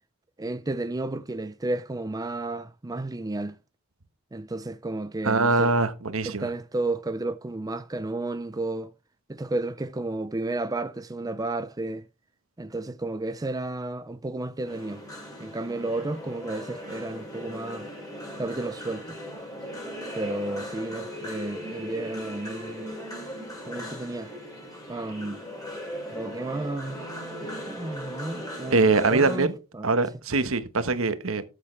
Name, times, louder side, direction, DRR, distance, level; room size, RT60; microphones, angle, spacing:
voice 1, 0.4-3.6 4.3-5.7 6.2-8.9 9.3-12.0 12.6-15.0 15.4-17.9 18.4-19.2 20.1-22.9 23.7-24.3 24.9-25.4 26.1-27.0 27.4-29.9, right 2 dB, 15° right, 0.5 m, -32 dB
voice 2, 5.2-6.5 28.7-29.5 29.8-31.4, right 3 dB, 70° right, 1.3 m, -23 dB
sound 1, 14.7-29.4, equal, 15° left, 4.9 m, -38 dB
13.0 x 8.5 x 3.3 m
head